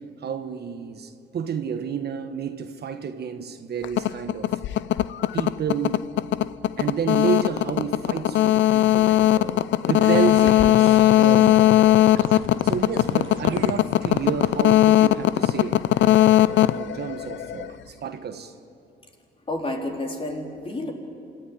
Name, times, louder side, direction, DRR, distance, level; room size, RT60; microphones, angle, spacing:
voice 1, 0.2-4.6 5.3-6.0 6.8-11.6 12.6-15.8 16.7-18.5, right 7 dB, 55° right, 8 dB, 1.3 m, -30 dB
sound 1, 3.8-17.7, left 13 dB, 70° left, 0.6 m, -19 dB
sound 2, 10.0-11.8 12.1-14.7, right 6 dB, 80° right, 1.5 m, -40 dB
voice 2, 19.5-20.9, left 1 dB, 25° left, 1 dB, 3.8 m, -30 dB
26.0 x 14.5 x 9.7 m, 2.5 s
cardioid pair, 90°, 20 cm